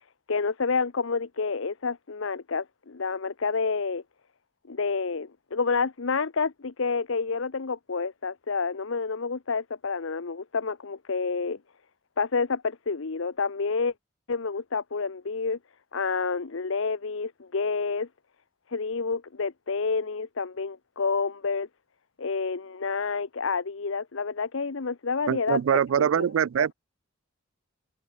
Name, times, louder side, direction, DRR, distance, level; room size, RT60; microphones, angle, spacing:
voice 1, 0.3-4.0 4.7-11.6 12.2-13.9 14.3-15.6 15.9-18.1 18.7-21.7 22.2-25.6 26.0-26.3 26.6-26.7, left 4 dB, 65° left, 0.8 m, -29 dB
voice 2, 25.3-26.7, right 8 dB, 70° right, 0.3 m, -23 dB
head